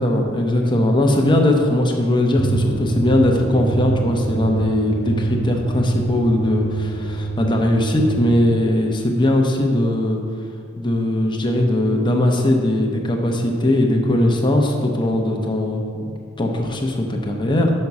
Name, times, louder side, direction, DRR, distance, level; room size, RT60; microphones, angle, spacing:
voice 1, 0.0-10.2 10.8-15.8 16.4-17.7, left 1 dB, 25° left, 2 dB, 0.8 m, -19 dB
sound 1, 2.4-8.4, right 4 dB, 45° left, 1.4 m, -26 dB
5.8 x 5.4 x 6.0 m, 2.3 s
head